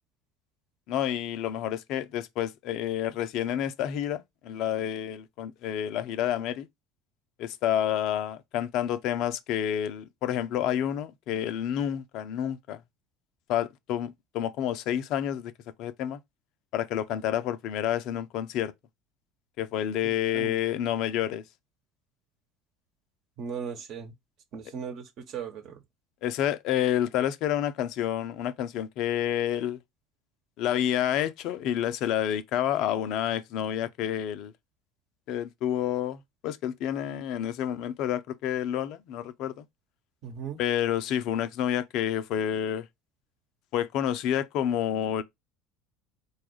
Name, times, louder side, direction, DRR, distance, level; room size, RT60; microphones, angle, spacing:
voice 1, 0.9-6.7 7.4-12.8 13.5-15.5 15.8-16.2 16.7-18.7 19.6-21.4 26.2-29.8 30.6-34.5 35.3-39.6 40.6-42.9 43.7-45.2, left 10 dB, 55° left, 0.5 m, -29 dB
voice 2, 23.4-24.1 24.5-25.8 40.2-40.6, right 7 dB, 50° right, 1.1 m, -37 dB
4.1 x 2.4 x 4.7 m
figure-of-eight pair, 65°, 0 cm